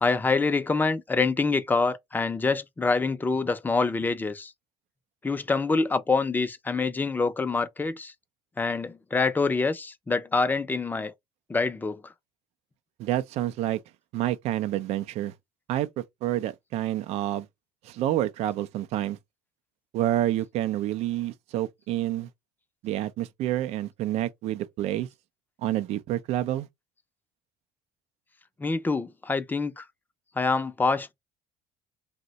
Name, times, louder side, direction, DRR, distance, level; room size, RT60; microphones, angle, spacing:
voice 1, 0.0-4.5 5.2-8.1 8.6-11.1 11.5-12.0 28.6-29.8 30.4-31.1, left 4 dB, 15° left, 0.5 m, -26 dB
voice 2, 13.0-13.8 14.1-15.3 15.7-17.5 17.8-19.2 19.9-22.3 22.8-25.1 25.6-26.7, right 13 dB, 65° right, 0.4 m, -28 dB
2.6 x 2.1 x 3.9 m
supercardioid pair, 90°, 12 cm